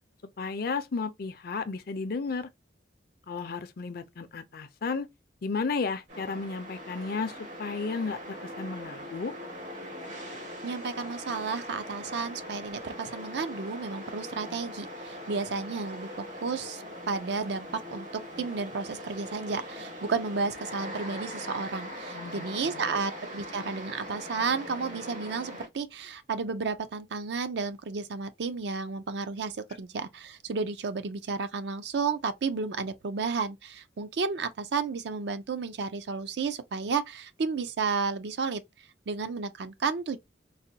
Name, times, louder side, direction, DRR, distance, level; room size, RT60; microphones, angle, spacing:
voice 1, 0.4-2.5 3.3-5.1 5.4-7.3 7.6-9.3 22.1-23.0, left 4 dB, 55° left, 0.5 m, -33 dB
sound 1, 6.1-25.7, equal, 85° right, 2.1 m, -41 dB
voice 2, 10.6-18.1 18.4-38.6 39.1-40.2, right 4 dB, 65° right, 0.5 m, -32 dB
4.0 x 2.2 x 2.7 m
head